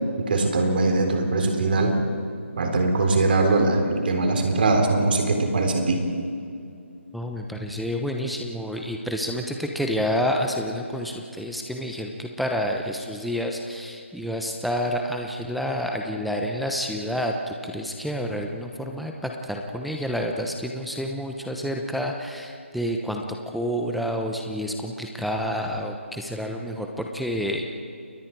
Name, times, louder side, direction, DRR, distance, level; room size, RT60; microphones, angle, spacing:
voice 1, 0.2-1.9 2.6-6.0, right 2 dB, 45° right, 4 dB, 3.9 m, -21 dB
voice 2, 7.1-27.8, equal, ahead, 1 dB, 0.9 m, -29 dB
29.5 x 21.5 x 4.8 m, 2.5 s
figure-of-eight pair, 160°, 7 cm